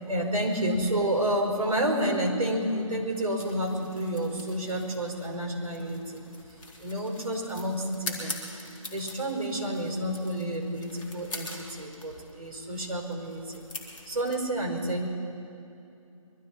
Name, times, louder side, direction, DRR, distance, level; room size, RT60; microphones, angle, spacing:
voice 1, 0.0-6.2 6.8-8.4 8.9-13.6 14.0-15.1, right 1 dB, 75° right, 0 dB, 4.7 m, -30 dB
sound 1, 3.4-14.3, left 2 dB, ahead, 0.5 m, -44 dB
23.5 x 13.5 x 4.4 m, 2.7 s
hypercardioid pair, 170°, 18 cm